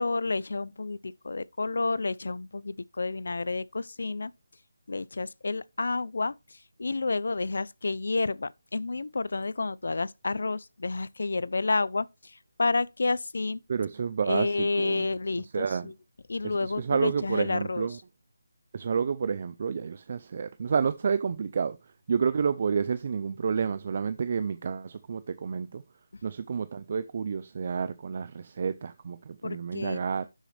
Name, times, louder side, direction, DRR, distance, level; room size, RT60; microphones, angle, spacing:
voice 1, 0.0-4.3 4.9-13.6 14.2-15.9 16.3-17.9 29.4-30.0, left 3 dB, 60° left, 0.5 m, -30 dB
voice 2, 13.7-15.1 15.5-15.9 16.4-18.0 18.7-21.8 22.1-25.8 26.2-30.2, right 6 dB, 30° right, 0.5 m, -30 dB
12.0 x 6.4 x 3.3 m
figure-of-eight pair, 175°, 0 cm